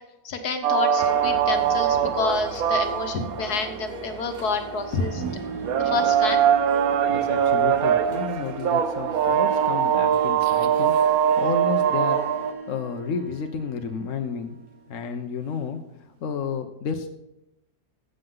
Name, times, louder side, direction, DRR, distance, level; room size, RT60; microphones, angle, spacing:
voice 1, 0.2-5.3 5.8-6.4, left 4 dB, 70° left, 6 dB, 1.7 m, -28 dB
sound 1, 0.6-12.5, right 9 dB, 70° right, 1.2 m, -23 dB
Harp, 0.8-16.2, right 3 dB, 90° right, 2.8 m, -42 dB
sound 2, 1.0-10.5, equal, 20° right, 4.1 m, -44 dB
voice 2, 7.1-12.2 12.7-14.6 14.9-17.1, left 6 dB, 55° left, 5 dB, 1.2 m, -31 dB
15.0 x 6.8 x 3.9 m, 0.90 s
omnidirectional pair, 1.7 m